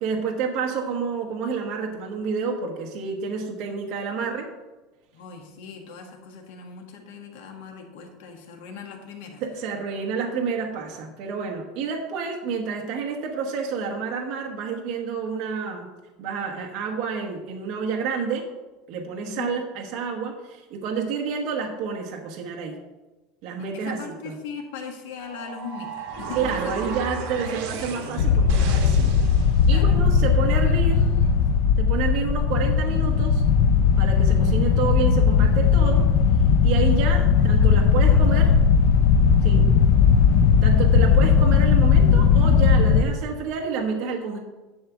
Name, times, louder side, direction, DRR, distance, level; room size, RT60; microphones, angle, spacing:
voice 1, 0.0-4.5 9.4-15.9 16.2-18.5 18.9-22.8 23.4-24.4 26.3-29.2 29.7-31.0 31.8-33.4 34.0-36.1 36.6-38.5 39.4-39.7 40.6-44.4, right 5 dB, 45° right, 1 dB, 1.1 m, -29 dB
voice 2, 5.1-9.4 19.2-19.5 23.6-26.8 27.1-27.2 29.7-30.3 30.6-31.4 37.4-38.6, left 5 dB, 70° left, 2 dB, 1.5 m, -40 dB
sound 1, 25.2-29.8, right 5 dB, 60° right, 1.6 m, -34 dB
sound 2, 28.2-43.0, left 6 dB, 55° left, 0.6 m, -18 dB
10.5 x 3.5 x 7.1 m, 1.2 s
cardioid pair, 175°, 0 cm